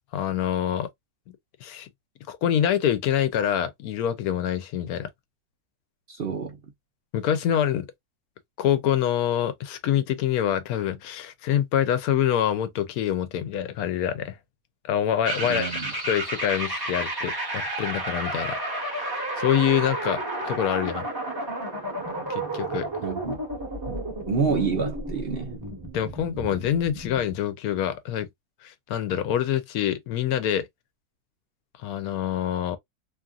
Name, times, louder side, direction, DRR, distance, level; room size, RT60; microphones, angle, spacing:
voice 1, 0.1-0.9 1.6-1.9 2.3-5.1 7.1-7.9 8.6-14.4 14.8-21.1 22.3-22.9 25.9-28.3 28.6-30.7 31.8-32.8, left 10 dB, 80° left, 1.1 m, -26 dB
voice 2, 6.1-6.6 15.5-15.9 23.0-23.4 23.9-24.0 24.3-25.5, right 5 dB, 50° right, 0.8 m, -28 dB
sound 1, 15.2-27.3, right 1 dB, 15° right, 1.1 m, -32 dB
2.9 x 2.4 x 2.4 m
omnidirectional pair, 1.6 m